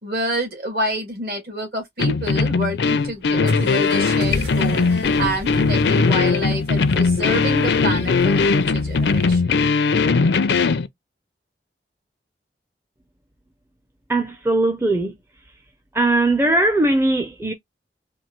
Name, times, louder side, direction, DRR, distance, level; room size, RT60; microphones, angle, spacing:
voice 1, 0.0-9.6, right 1 dB, 55° right, 2.1 m, -28 dB
sound 1, 2.0-10.9, left 4 dB, 80° left, 0.5 m, -19 dB
Accelerating revving vroom, 2.8-9.4, equal, 90° right, 2.2 m, -38 dB
voice 2, 14.1-15.1 15.9-17.5, right 2 dB, 15° right, 0.5 m, -19 dB
4.4 x 2.6 x 2.9 m
head